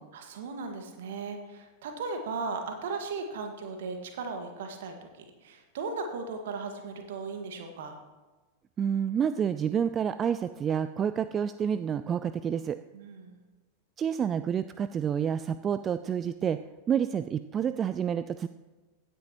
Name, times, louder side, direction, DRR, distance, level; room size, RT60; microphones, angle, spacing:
voice 1, 0.1-8.0 12.9-13.4, right 4 dB, 55° right, 4 dB, 1.7 m, -37 dB
voice 2, 8.8-12.8 14.0-16.6 16.9-18.5, right 8 dB, 25° right, 12 dB, 0.3 m, -29 dB
16.0 x 9.7 x 3.0 m, 1.2 s
figure-of-eight pair, 90°, 0 cm